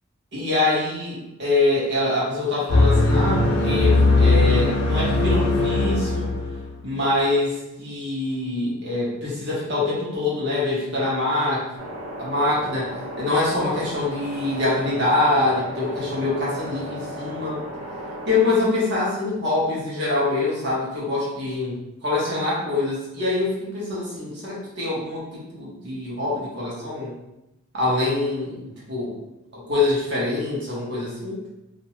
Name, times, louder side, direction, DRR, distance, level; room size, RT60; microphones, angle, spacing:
voice 1, 0.3-6.3 6.8-11.6 12.2-12.9 13.2-17.6 18.3-27.1 27.7-28.6 28.9-29.1 29.5-31.4, left 2 dB, 50° right, -7 dB, 1.1 m, -24 dB
sound 1, 2.7-6.8, left 2 dB, 75° left, 0.6 m, -19 dB
sound 2, 11.8-18.4, equal, 30° right, 0.4 m, -35 dB
2.6 x 2.2 x 3.0 m, 0.92 s
head